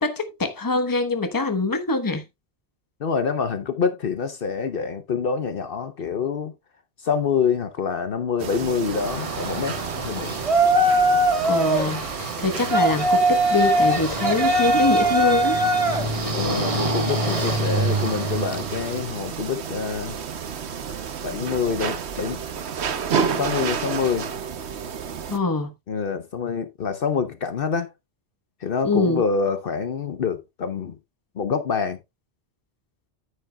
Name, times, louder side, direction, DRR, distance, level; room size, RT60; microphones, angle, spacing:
voice 1, 0.0-2.2 11.4-15.6 16.2-16.4 25.3-25.7 28.8-29.2, left 3 dB, 20° left, 1.0 m, -24 dB
voice 2, 3.0-6.5 7.0-10.4 12.5-12.7 16.3-20.2 21.2-22.4 23.4-24.3 25.9-27.9 28.6-31.0 31.4-32.0, left 6 dB, 60° left, 1.0 m, -26 dB
sound 1, 8.4-25.4, right 6 dB, 85° right, 1.2 m, -31 dB
Yell, 8.9-19.1, right 1 dB, 30° right, 1.4 m, -22 dB
9.9 x 9.4 x 2.2 m
omnidirectional pair, 1.1 m